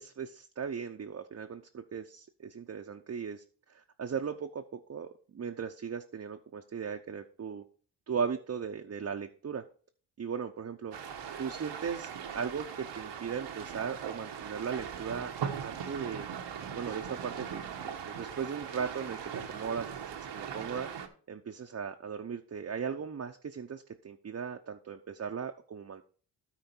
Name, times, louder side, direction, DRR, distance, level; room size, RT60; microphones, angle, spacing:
voice 1, 0.0-7.6 8.1-9.6 10.2-11.0 11.4-16.3 16.7-20.9 21.3-26.0, right 6 dB, 40° right, 4 dB, 0.8 m, -38 dB
sound 1, 10.9-21.1, right 8 dB, 85° right, 1.2 m, -40 dB
13.5 x 4.4 x 4.5 m, 0.42 s
cardioid pair, 75°, 41 cm